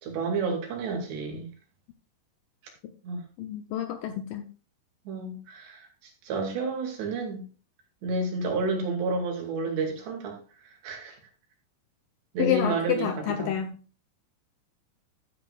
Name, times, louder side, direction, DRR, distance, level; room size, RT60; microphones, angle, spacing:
voice 1, 0.0-1.5 3.0-3.2 5.1-5.9 6.2-7.4 8.0-10.4 10.8-11.2 12.3-13.6, right 3 dB, 85° right, 1 dB, 4.7 m, -30 dB
voice 2, 3.4-4.5 12.4-13.8, left 10 dB, 75° left, 7 dB, 2.1 m, -28 dB
12.5 x 9.2 x 2.5 m, 0.36 s
omnidirectional pair, 4.8 m